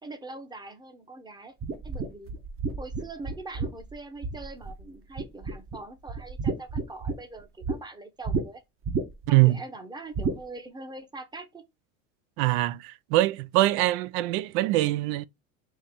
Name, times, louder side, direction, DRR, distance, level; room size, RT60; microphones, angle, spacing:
voice 1, 0.0-1.6 1.8-2.3 2.8-8.6 9.3-11.6, right 2 dB, 10° right, 0.9 m, -42 dB
sound 1, 1.6-4.8 5.2-5.8 6.1-7.8 8.2-8.4 8.8-9.4 10.1-10.4, right 4 dB, 30° right, 1.0 m, -31 dB
voice 2, 9.3-9.6 12.4-15.3, right 17 dB, 60° right, 0.5 m, -23 dB
4.5 x 2.8 x 3.5 m
hypercardioid pair, 90°, 40 cm